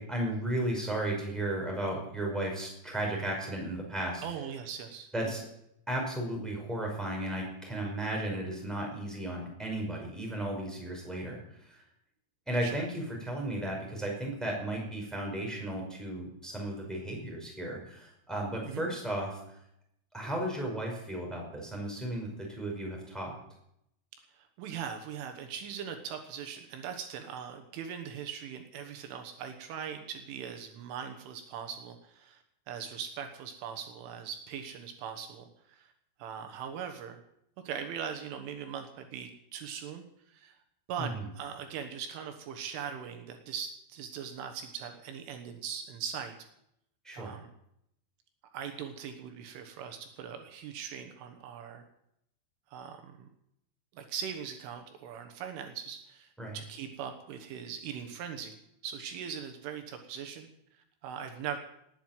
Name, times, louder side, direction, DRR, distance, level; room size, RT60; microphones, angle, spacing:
voice 1, 0.0-4.2 5.1-5.4 5.9-11.8 12.5-19.4 20.1-23.3 41.0-41.2 47.0-47.4 56.4-56.6, right 1 dB, ahead, -1 dB, 4.5 m, -34 dB
voice 2, 4.2-5.3 12.6-12.8 18.6-18.9 24.3-35.9 36.2-37.2 37.7-40.6 40.9-46.3 47.1-47.5 48.5-51.9 52.7-53.3 53.9-58.6 58.8-60.5 61.0-61.6, right 8 dB, 75° right, 6 dB, 3.7 m, -40 dB
18.5 x 9.4 x 7.4 m, 0.78 s
omnidirectional pair, 5.8 m